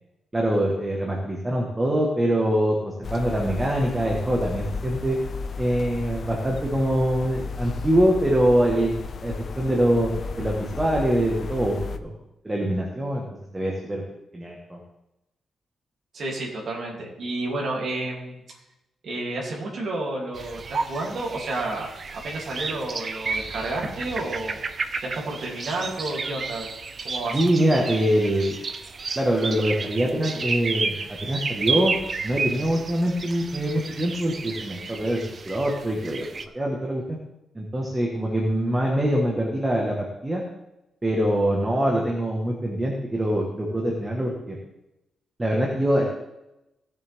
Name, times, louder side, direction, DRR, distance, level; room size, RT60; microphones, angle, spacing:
voice 1, 0.3-5.2 5.6-8.9 9.2-12.2 12.4-13.3 13.5-14.0 14.3-14.8 27.3-28.6 29.1-31.9 32.2-36.2 36.5-37.2 37.5-40.4 41.0-44.6 45.4-46.0, right 1 dB, 15° right, -2 dB, 1.5 m, -24 dB
sound 1, 3.0-12.0, left 5 dB, 40° left, 0.6 m, -34 dB
voice 2, 16.1-18.4 19.0-24.6 25.0-26.7 27.0-27.4, right 2 dB, 50° right, -3 dB, 3.0 m, -31 dB
sound 2, 20.3-36.5, right 4 dB, 35° right, 0.6 m, -32 dB
17.0 x 7.3 x 3.6 m, 0.90 s
wide cardioid pair, 175°, 0 cm